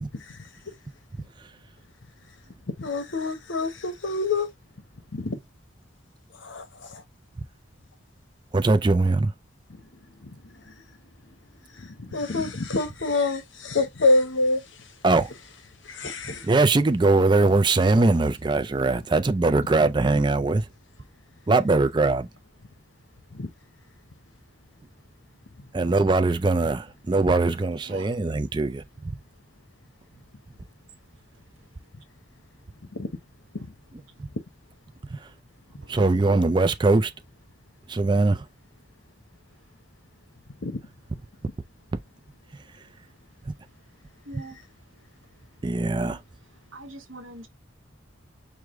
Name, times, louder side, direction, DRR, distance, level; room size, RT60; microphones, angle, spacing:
voice 1, 0.1-0.7 2.8-4.5 5.1-5.4 6.3-7.0 9.7-10.8 11.3-11.4 11.7-14.9 15.8-16.5 19.6-19.7 23.3-23.5 25.6-25.7 32.9-33.1 33.5-33.8 40.6-40.8, left 3 dB, 70° left, 0.9 m, -28 dB
voice 2, 8.5-9.3 15.0-15.3 16.4-20.6 21.5-22.3 25.7-28.8 35.1-35.2 35.9-37.1 37.9-38.4 43.5-43.6 45.6-46.2, right 3 dB, 25° right, 0.4 m, -21 dB
voice 3, 27.6-28.2 28.6-28.7 35.8-35.9 44.2-44.6 45.9-46.2 46.5-47.5, right 2 dB, 85° right, 1.2 m, -44 dB
4.8 x 2.2 x 3.6 m
head